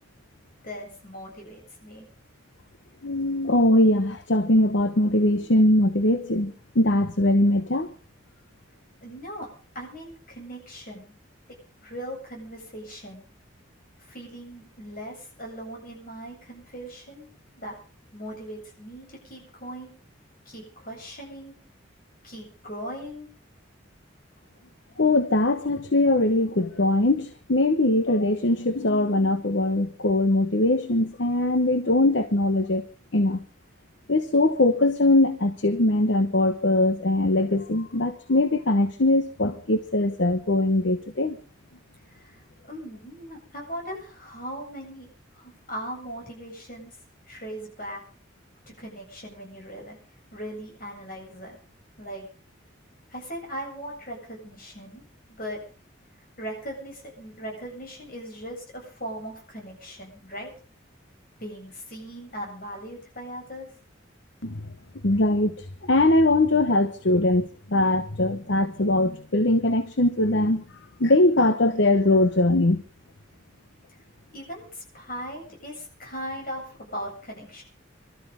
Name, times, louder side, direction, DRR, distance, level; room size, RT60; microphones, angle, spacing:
voice 1, 0.6-2.1 9.0-9.5 9.7-11.1 11.5-13.3 14.0-17.3 17.5-17.8 18.1-19.9 20.4-21.5 22.2-23.3 42.1-47.0 47.3-48.0 48.8-50.0 50.3-51.6 52.0-52.3 53.1-55.0 55.4-55.6 56.4-60.5 61.4-63.7 74.3-77.6, equal, 45° left, 0 dB, 7.9 m, -39 dB
voice 2, 3.0-7.9 25.0-32.8 33.1-33.4 34.1-41.4 64.4-64.7 65.0-70.6 71.0-72.8, left 1 dB, 65° left, 10 dB, 1.0 m, -21 dB
26.5 x 13.0 x 3.8 m, 0.37 s
head